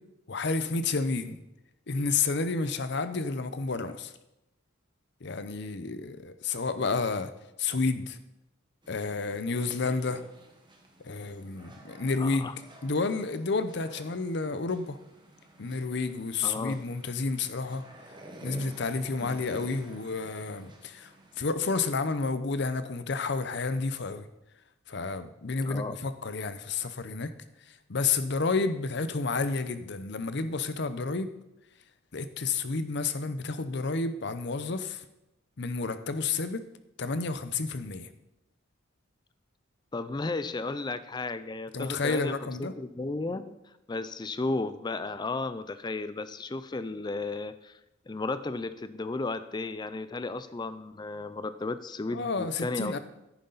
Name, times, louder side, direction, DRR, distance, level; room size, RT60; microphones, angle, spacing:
voice 1, 0.3-1.4 1.9-4.1 5.2-7.3 7.6-8.2 8.9-10.2 11.0-12.5 12.8-15.0 15.6-17.8 18.4-21.1 21.4-24.3 24.9-27.3 27.9-31.3 32.1-35.0 35.6-36.6 37.0-38.1 41.7-42.7 52.1-53.0, left 4 dB, 60° left, 11 dB, 0.7 m, -30 dB
sound 1, 8.8-21.4, right 1 dB, 25° right, 1.4 m, -51 dB
voice 2, 12.2-12.5 16.4-16.8 19.2-19.4 25.6-26.0 39.9-42.3 42.6-43.5 43.9-47.8 48.1-53.0, left 3 dB, 20° left, 13 dB, 0.4 m, -34 dB
10.5 x 9.6 x 4.0 m, 0.91 s
head